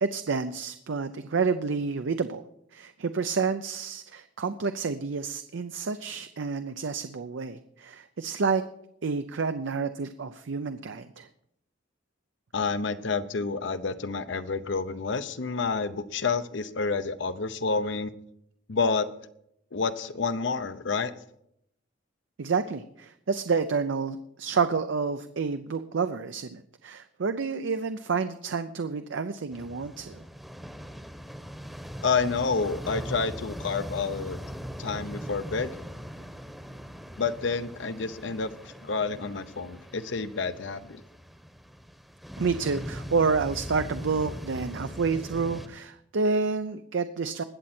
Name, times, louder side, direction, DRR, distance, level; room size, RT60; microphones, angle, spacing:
voice 1, 0.0-2.4 2.7-8.6 9.0-11.3 22.4-30.2 42.4-47.4, right 5 dB, 70° right, 10 dB, 0.5 m, -29 dB
voice 2, 12.5-18.1 18.7-19.1 19.7-21.1 32.0-34.4 34.8-35.7 37.2-41.0, left 4 dB, 65° left, 11 dB, 0.7 m, -29 dB
sound 1, 29.5-45.7, equal, ahead, 0.9 m, -40 dB
20.0 x 7.5 x 4.3 m, 0.75 s
head